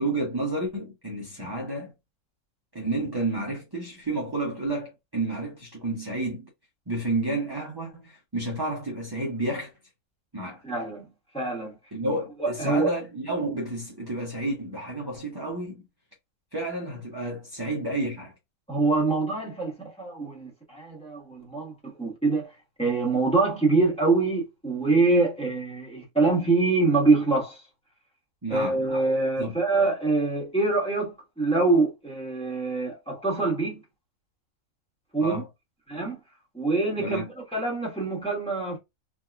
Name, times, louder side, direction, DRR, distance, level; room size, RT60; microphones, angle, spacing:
voice 1, 0.0-1.9 2.7-6.5 6.9-9.7 10.3-10.6 11.9-15.8 16.5-18.3 28.4-28.8 29.4-29.6 35.2-35.5 37.0-37.3, right 2 dB, 20° right, 0.6 m, -30 dB
voice 2, 10.6-11.1 11.3-11.8 12.4-12.9 18.7-22.5 22.8-27.6 28.5-33.8 35.1-35.4 35.9-36.2 36.5-38.8, right 3 dB, 5° left, 1.2 m, -25 dB
3.4 x 2.7 x 2.3 m
omnidirectional pair, 1.6 m